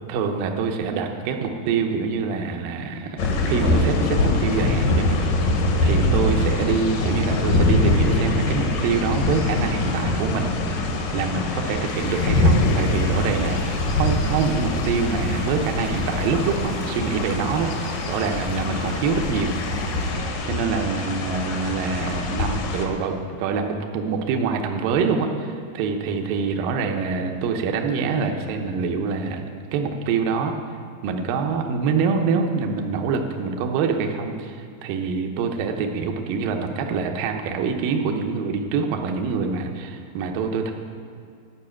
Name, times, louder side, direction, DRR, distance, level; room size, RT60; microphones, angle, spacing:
voice 1, 0.1-3.2 3.5-10.6 11.1-19.6 20.5-29.4 29.7-30.5 31.0-40.7, right 5 dB, 90° right, 3 dB, 1.9 m, -25 dB
sound 1, 3.2-22.9, left 2 dB, 70° left, 2.1 m, -23 dB
sound 2, 11.9-20.1, left 1 dB, 85° left, 5.6 m, -43 dB
11.5 x 5.7 x 8.6 m, 2.3 s
omnidirectional pair, 5.3 m